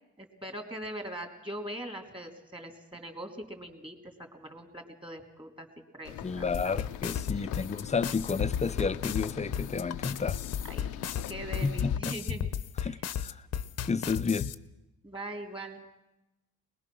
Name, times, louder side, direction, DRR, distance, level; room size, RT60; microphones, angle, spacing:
voice 1, 0.2-5.7 5.9-6.9 7.3-7.5 10.7-12.5 12.8-13.0 15.0-15.8, right 1 dB, 15° right, 3.3 m, -42 dB
sound 1, 6.0-12.0, left 12 dB, 85° left, 0.7 m, -42 dB
voice 2, 6.2-10.4 11.6-12.2 12.8-13.4 13.8-14.5, left 5 dB, 25° left, 0.6 m, -31 dB
sound 2, 6.5-14.5, left 9 dB, 55° left, 0.9 m, -33 dB
22.0 x 20.0 x 6.2 m
cardioid pair, 90°, 30 cm